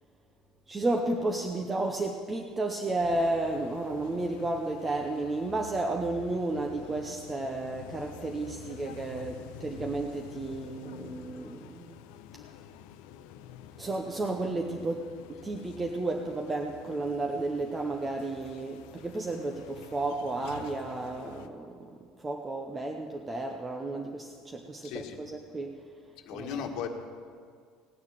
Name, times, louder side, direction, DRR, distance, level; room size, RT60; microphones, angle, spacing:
voice 1, 0.7-12.0 13.8-25.8 26.3-26.7, right 2 dB, 10° right, 2 dB, 0.7 m, -32 dB
sound 1, 3.0-21.5, left 10 dB, 85° left, 0.8 m, -48 dB
voice 2, 24.8-25.2 26.3-26.9, left 8 dB, 55° left, 3 dB, 1.5 m, -36 dB
17.5 x 6.9 x 9.9 m, 2.1 s
cardioid pair, 170°, 0 cm